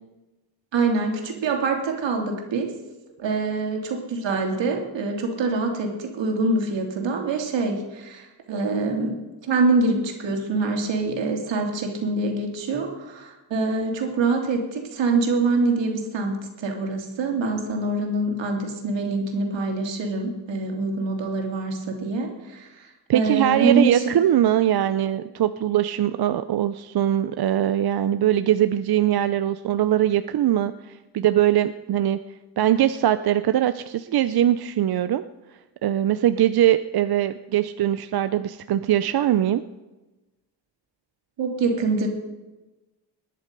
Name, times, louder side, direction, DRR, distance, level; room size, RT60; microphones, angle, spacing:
voice 1, 0.7-2.7 3.2-9.2 9.4-24.1 41.4-42.1, right 3 dB, 80° right, 2 dB, 2.9 m, -25 dB
voice 2, 23.1-32.2 32.6-35.2 35.8-39.6, right 11 dB, 55° right, 11 dB, 0.6 m, -21 dB
19.5 x 10.5 x 5.3 m, 1.1 s
cardioid pair, 80°, 44 cm